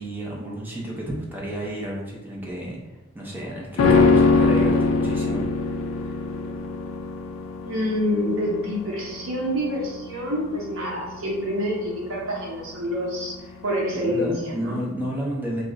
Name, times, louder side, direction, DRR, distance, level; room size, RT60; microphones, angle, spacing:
voice 1, 0.0-2.8 3.1-6.2 13.5-13.6 13.9-15.6, right 1 dB, 10° right, -3 dB, 0.5 m, -32 dB
Piano chord explosion, 3.8-13.2 13.5-13.6, left 3 dB, 65° left, 0.3 m, -23 dB
voice 2, 7.6-13.4 13.6-14.8, equal, 65° right, -3 dB, 0.6 m, -27 dB
2.3 x 2.0 x 3.7 m, 1.1 s
head